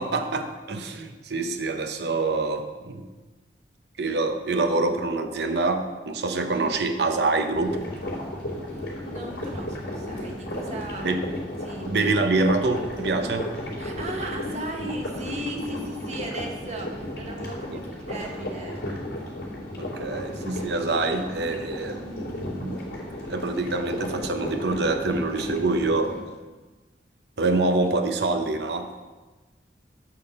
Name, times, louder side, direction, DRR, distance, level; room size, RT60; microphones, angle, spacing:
voice 1, 0.0-3.1 4.0-7.8 11.0-11.3 11.8-13.5 17.7-17.8 19.8-22.8 23.3-26.2 27.4-29.0, right 3 dB, 65° right, 6 dB, 0.8 m, -26 dB
sound 1, 7.5-26.2, left 1 dB, 85° left, 2.9 m, -34 dB
voice 2, 9.0-11.2 11.6-11.9 13.8-18.9, right 1 dB, 40° right, 2 dB, 1.1 m, -36 dB
8.7 x 4.4 x 6.7 m, 1.2 s
head